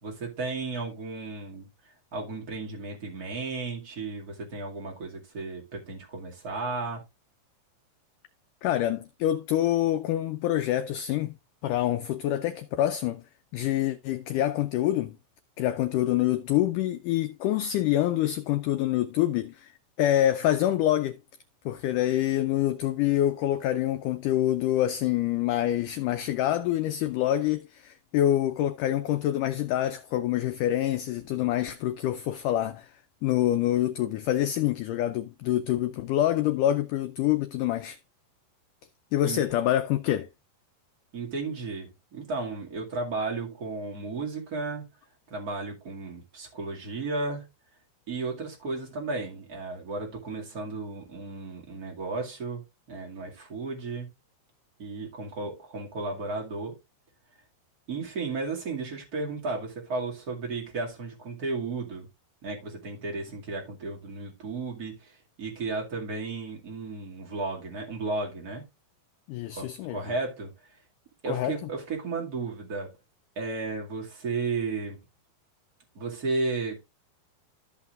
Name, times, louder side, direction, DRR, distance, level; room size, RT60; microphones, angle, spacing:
voice 1, 0.0-1.7 2.1-7.0 39.3-39.4 41.1-44.9 45.3-47.5 48.1-54.1 54.8-56.7 57.9-62.1 62.4-65.1 65.4-68.6 69.5-70.5 71.2-72.9 73.4-75.0 75.9-76.8, right 3 dB, 30° right, 2.1 m, -34 dB
voice 2, 8.6-11.3 11.6-13.2 13.5-15.2 15.6-19.7 20.0-21.2 21.7-32.9 33.2-38.0 39.1-40.3 69.3-70.0 71.3-71.6, left 13 dB, 90° left, 1.8 m, -26 dB
14.0 x 5.8 x 2.4 m
omnidirectional pair, 4.4 m